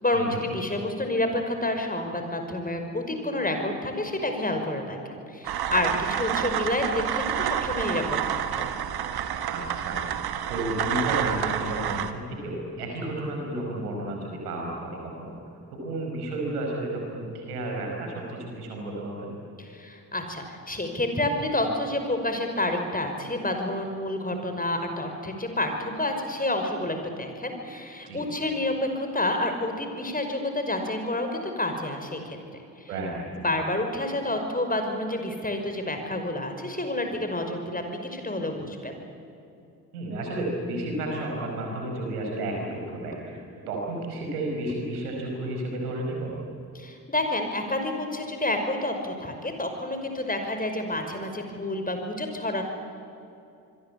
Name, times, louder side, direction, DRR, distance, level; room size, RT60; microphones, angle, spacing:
voice 1, 0.0-8.6 19.6-32.4 32.8-32.9 33.4-38.9 46.7-52.6, left 1 dB, 20° left, 5 dB, 5.5 m, -29 dB
sound 1, 5.4-12.1, right 9 dB, 55° right, 1.7 m, -29 dB
voice 2, 9.5-15.3 15.8-19.3 28.1-28.2 32.9-33.3 39.9-46.3, right 1 dB, 85° right, 0 dB, 5.2 m, -32 dB
26.0 x 23.0 x 8.5 m, 2.7 s
figure-of-eight pair, 45°, 45 cm